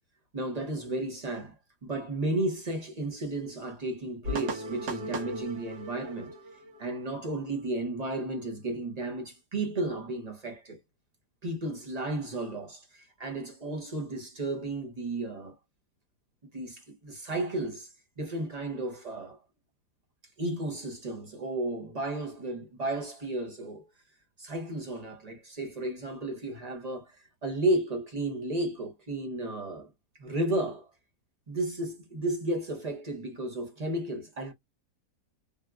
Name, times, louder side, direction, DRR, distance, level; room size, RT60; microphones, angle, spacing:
voice 1, 0.3-1.5 1.8-6.4 6.8-10.8 11.4-15.5 16.5-19.4 20.4-23.9 24.4-29.9 30.2-30.9 31.5-34.5, right 2 dB, 45° right, 0.5 m, -33 dB
sound 1, 4.2-7.9, right 1 dB, 75° right, 1.4 m, -38 dB
3.4 x 2.3 x 2.3 m
omnidirectional pair, 1.7 m